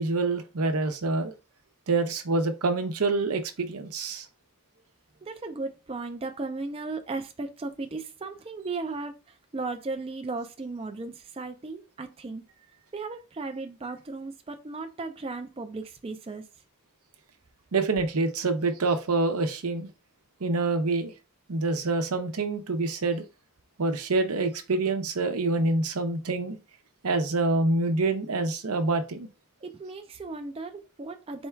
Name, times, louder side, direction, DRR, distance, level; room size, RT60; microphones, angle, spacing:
voice 1, 0.0-1.3 1.9-4.3 17.7-19.9 20.4-21.1 21.5-23.2 23.8-26.6 27.0-29.3, right 3 dB, 85° right, 0.8 m, -26 dB
voice 2, 5.2-9.1 9.5-12.4 12.9-16.4 29.6-31.5, right 3 dB, 25° right, 0.4 m, -36 dB
4.4 x 2.3 x 4.4 m
head